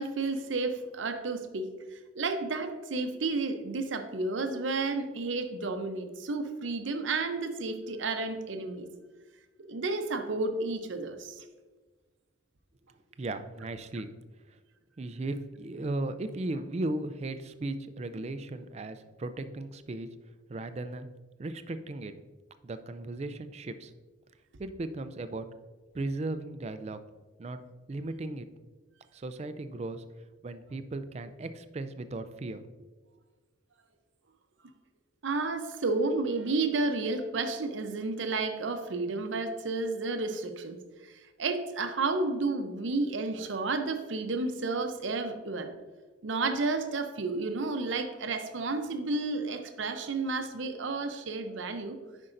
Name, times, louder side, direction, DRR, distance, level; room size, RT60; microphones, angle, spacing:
voice 1, 0.0-8.9 9.7-11.4 35.2-40.8 41.0-45.7 46.2-52.0, right 3 dB, 75° right, 7 dB, 0.7 m, -31 dB
voice 2, 13.2-14.1 15.0-20.1 20.5-21.1 21.4-22.1 22.6-23.9 24.6-25.5 25.9-27.0 27.4-27.6 27.9-28.4 29.1-30.0 30.4-32.6, right 2 dB, 35° right, 10 dB, 0.4 m, -36 dB
9.7 x 5.3 x 2.6 m, 1.3 s
head